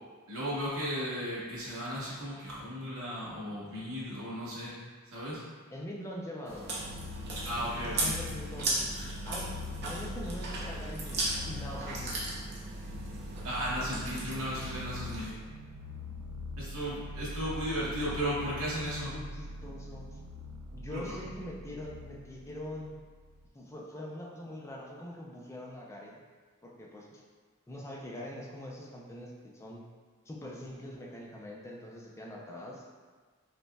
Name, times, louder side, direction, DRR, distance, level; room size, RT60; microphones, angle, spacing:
voice 1, 0.3-4.7 5.1-5.4 7.4-8.1 13.4-15.3 16.6-19.1 20.9-21.2, equal, 70° right, -7 dB, 1.1 m, -35 dB
voice 2, 5.7-6.7 7.6-9.6 9.9-12.3 18.8-20.2 20.7-23.0 23.5-26.2 26.6-27.2 27.7-29.8 30.3-32.9, left 1 dB, 15° left, -3 dB, 0.4 m, -43 dB
Chewing mastication, 6.4-15.3, right 2 dB, 50° right, 0.7 m, -37 dB
sound 1, 6.8-23.5, left 1 dB, 90° right, 0.4 m, -42 dB
5.1 x 2.1 x 2.2 m, 1.4 s
head